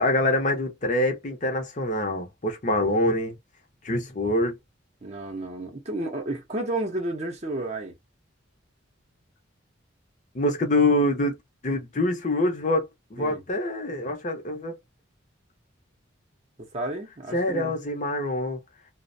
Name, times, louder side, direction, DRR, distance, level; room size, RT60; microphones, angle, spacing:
voice 1, 0.0-3.4 3.8-4.6 10.3-11.4 11.6-14.8 17.3-18.6, left 1 dB, 40° left, 0.6 m, -25 dB
voice 2, 5.0-7.9 13.2-13.4 16.6-17.8, right 2 dB, 35° right, 0.6 m, -32 dB
2.4 x 2.0 x 2.5 m
head